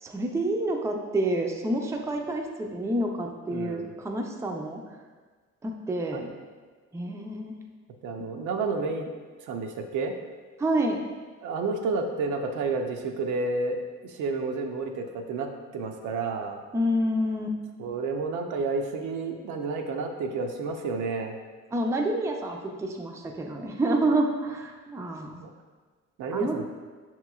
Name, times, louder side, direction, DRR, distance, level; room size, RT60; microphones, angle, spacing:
voice 1, 0.0-4.8 5.6-6.3 6.9-7.6 10.6-11.0 16.7-17.6 21.7-25.4 26.3-26.6, right 1 dB, 10° right, 2 dB, 0.4 m, -28 dB
voice 2, 3.5-3.9 6.1-6.2 8.0-9.1 9.5-10.1 11.4-16.6 17.8-21.3 25.4-25.5 26.2-26.7, right 4 dB, 75° right, 4 dB, 0.5 m, -30 dB
5.6 x 3.0 x 2.3 m, 1.4 s
cardioid pair, 90°, 30 cm